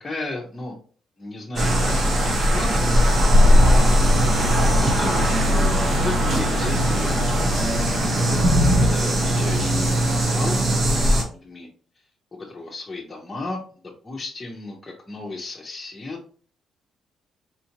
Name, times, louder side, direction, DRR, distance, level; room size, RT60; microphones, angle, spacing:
voice 1, 0.0-0.7 1.2-2.8 3.6-4.1 4.8-7.3 7.6-8.0 8.8-10.6 11.1-11.7 12.3-16.2, left 2 dB, 20° left, -3 dB, 0.9 m, -34 dB
sound 1, 1.6-11.2, equal, 50° right, 1.0 m, -19 dB
4.3 x 2.6 x 2.8 m, 0.43 s
cardioid pair, 90°, 0 cm